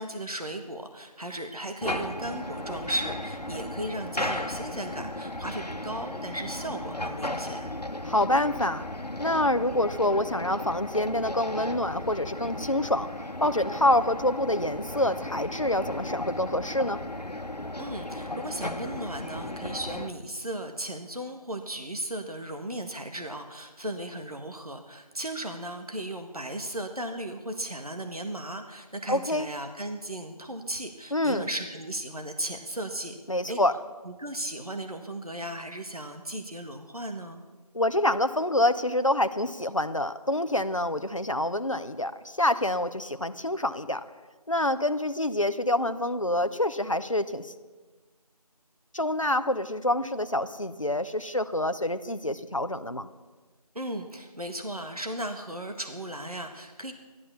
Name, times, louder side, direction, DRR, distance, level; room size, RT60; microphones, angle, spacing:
voice 1, 0.0-7.7 17.8-33.2 33.5-33.6 34.0-37.4 53.7-56.9, right 1 dB, 65° right, 5 dB, 1.6 m, -36 dB
sound 1, 1.8-20.1, left 1 dB, 90° left, 1.3 m, -35 dB
voice 2, 8.0-8.9 9.2-13.1 13.4-17.0 29.1-29.5 31.1-31.5 33.3-33.8 37.7-44.0 44.5-47.5 48.9-53.1, left 1 dB, 55° left, 10 dB, 0.9 m, -26 dB
14.5 x 12.0 x 7.0 m, 1.3 s
figure-of-eight pair, 180°, 20 cm